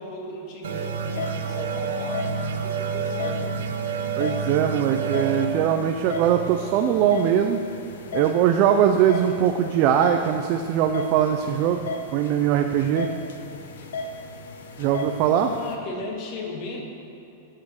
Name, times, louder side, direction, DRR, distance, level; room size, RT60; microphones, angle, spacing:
voice 1, 0.0-3.6 15.4-16.8, left 2 dB, 30° left, 1 dB, 1.6 m, -36 dB
sound 1, 0.6-15.8, left 2 dB, 85° left, 1.1 m, -36 dB
sound 2, 0.6-7.9, right 5 dB, 80° right, 0.9 m, -30 dB
voice 2, 4.2-7.6 8.1-13.1 14.8-15.5, right 9 dB, 35° right, 5 dB, 0.5 m, -21 dB
11.5 x 7.6 x 6.4 m, 2.8 s
supercardioid pair, 175°, 0 cm